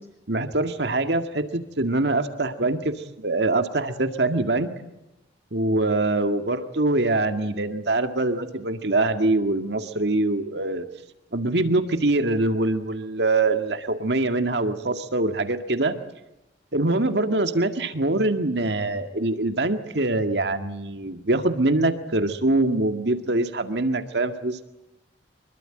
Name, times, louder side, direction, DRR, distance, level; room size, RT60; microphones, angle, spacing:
voice 1, 0.3-4.7 5.5-10.9 11.3-15.9 16.7-24.6, right 2 dB, 65° right, 8 dB, 2.0 m, -24 dB
25.5 x 23.0 x 9.0 m, 0.89 s
head